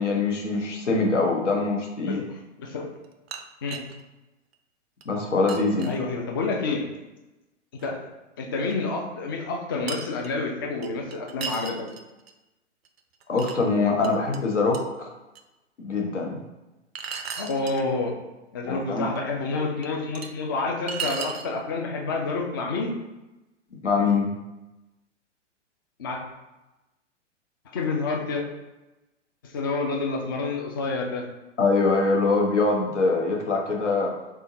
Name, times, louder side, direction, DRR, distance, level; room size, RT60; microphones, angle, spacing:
voice 1, 0.0-2.2 5.0-5.9 13.3-15.1 15.8-16.4 18.6-19.1 23.8-24.3 31.6-34.1, left 3 dB, 75° left, 0 dB, 1.0 m, -23 dB
voice 2, 2.1-2.9 3.6-3.8 5.8-6.8 7.7-8.0 8.4-11.9 17.4-18.1 18.5-22.9 26.0-26.2 27.7-28.4 29.4-31.2, left 3 dB, 20° left, 1 dB, 0.3 m, -28 dB
sound 1, 3.0-4.0 4.5-4.6 5.0-5.1 5.5-6.0 7.8-7.9 8.7-8.8 9.9-10.3 10.8-12.3 12.9-13.6 14.0-14.4 14.7-14.8 15.4-15.5 17.0-17.8 19.2-19.3 19.8-20.3 20.9-21.5, right 6 dB, 60° right, 0.5 m, -35 dB
3.7 x 3.6 x 2.7 m, 1.0 s
figure-of-eight pair, 115°, 36 cm